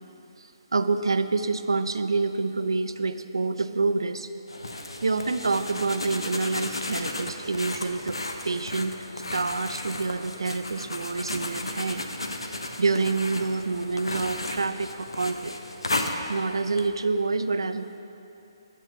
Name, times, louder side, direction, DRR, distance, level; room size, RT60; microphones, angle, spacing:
voice 1, 0.4-4.3 5.0-8.2 8.4-8.9 9.3-12.0 12.8-15.5 16.0-18.0, right 3 dB, 65° right, 10 dB, 0.5 m, -27 dB
sound 1, 4.5-16.9, left 2 dB, 75° left, 0.8 m, -34 dB
10.5 x 8.1 x 5.4 m, 2.9 s
figure-of-eight pair, 135°, 3 cm